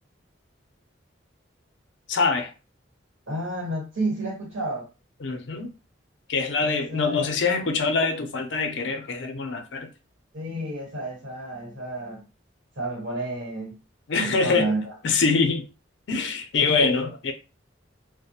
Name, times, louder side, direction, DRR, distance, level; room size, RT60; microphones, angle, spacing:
voice 1, 2.1-2.5 5.2-5.7 6.3-9.9 14.1-14.7 15.0-15.7 16.1-17.3, left 4 dB, 70° left, 0.5 m, -24 dB
voice 2, 3.3-4.9 6.6-7.4 10.3-12.2 12.8-13.7 14.2-14.9, right 2 dB, 85° right, 1.4 m, -31 dB
2.2 x 2.1 x 2.8 m
head